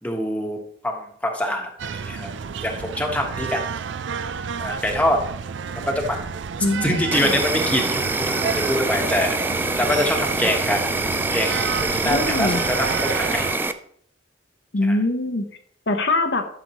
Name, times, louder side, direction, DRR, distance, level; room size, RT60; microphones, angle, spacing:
voice 1, 0.0-2.3 2.6-3.6 4.6-5.2 5.9-6.2 6.8-8.1 8.4-9.4 9.8-10.8 11.3-13.5 14.8-15.0, left 1 dB, 10° left, 1 dB, 1.3 m, -24 dB
sound 1, 1.8-13.6, right 6 dB, 70° right, 0.4 m, -31 dB
voice 2, 6.6-7.4 12.0-12.7 14.7-15.4 15.9-16.5, left 2 dB, 65° left, 5 dB, 0.9 m, -23 dB
Insect, 7.1-13.7, right 2 dB, 10° right, 0.4 m, -25 dB
12.0 x 6.8 x 3.0 m, 0.63 s
head